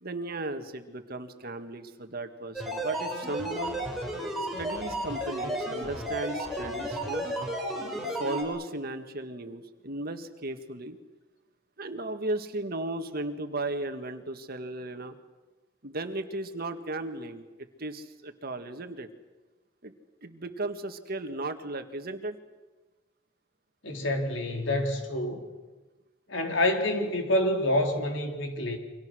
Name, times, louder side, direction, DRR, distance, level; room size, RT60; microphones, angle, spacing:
voice 1, 0.0-3.8 4.6-7.3 8.2-11.0 11.8-15.1 15.8-17.5 17.8-19.1 19.8-19.9 20.2-22.4, right 2 dB, 55° right, 7 dB, 1.8 m, -35 dB
sound 1, 2.5-8.4, right 1 dB, ahead, 5.8 m, -33 dB
voice 2, 23.8-25.4 26.3-28.8, left 1 dB, 90° left, 3 dB, 3.9 m, -27 dB
29.5 x 25.0 x 6.4 m, 1.2 s
head